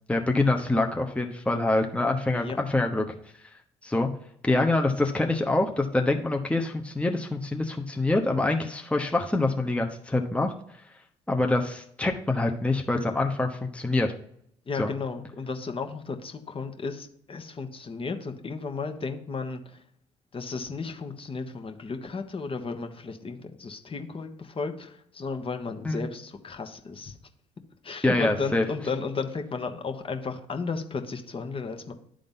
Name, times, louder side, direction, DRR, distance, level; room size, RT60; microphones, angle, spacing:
voice 1, 0.1-3.2 3.8-4.1 4.4-10.5 11.3-14.1 14.8-14.9 25.8-26.0 28.0-28.6, left 2 dB, 10° left, 2 dB, 1.0 m, -25 dB
voice 2, 14.6-19.8 20.3-27.2 27.8-31.9, left 4 dB, 40° left, 5 dB, 1.3 m, -34 dB
10.5 x 3.8 x 5.5 m, 0.70 s
hypercardioid pair, 60°, 15 cm